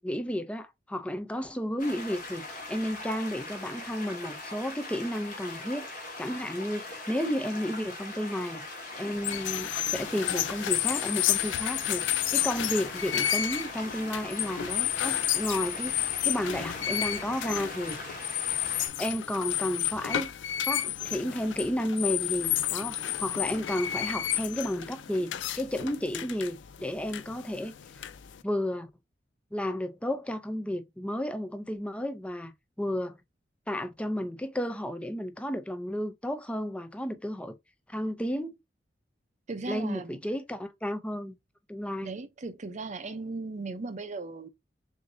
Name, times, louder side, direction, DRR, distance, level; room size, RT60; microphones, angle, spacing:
voice 1, 0.0-5.9 6.2-18.2 19.0-20.3 20.7-27.7 28.4-28.9 29.5-32.5 32.8-33.2 33.7-37.6 37.9-38.6 39.7-41.4 41.7-42.1, equal, 5° left, 0.5 m, -32 dB
sound 1, 1.8-18.9, left 2 dB, 45° left, 1.7 m, -41 dB
sound 2, 9.1-28.4, left 12 dB, 85° left, 0.4 m, -31 dB
voice 2, 39.5-40.2 42.0-44.5, right 3 dB, 40° right, 0.6 m, -37 dB
6.0 x 2.7 x 2.6 m
head